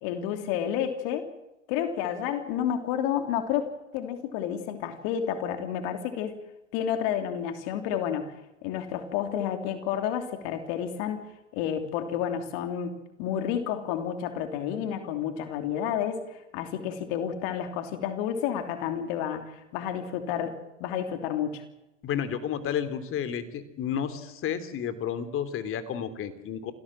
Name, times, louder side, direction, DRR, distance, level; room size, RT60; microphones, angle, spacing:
voice 1, 0.0-1.3 1.7-3.7 3.9-6.3 6.7-8.3 8.6-11.3 11.5-21.6, left 9 dB, 55° left, 7 dB, 3.1 m, -30 dB
voice 2, 22.0-26.7, left 8 dB, 35° left, 12 dB, 3.3 m, -31 dB
27.5 x 16.5 x 7.6 m, 0.97 s
hypercardioid pair, 100°, 36 cm